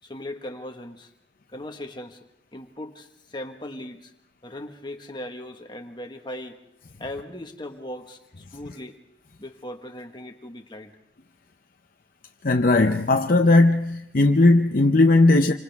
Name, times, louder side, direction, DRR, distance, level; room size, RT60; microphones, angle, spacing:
voice 1, 0.0-1.1 1.5-2.2 2.5-4.1 4.4-6.6 7.0-9.0 9.4-10.9, left 1 dB, 25° left, 1.5 m, -38 dB
voice 2, 12.4-15.5, left 2 dB, 50° left, 0.7 m, -17 dB
28.5 x 25.5 x 3.6 m
head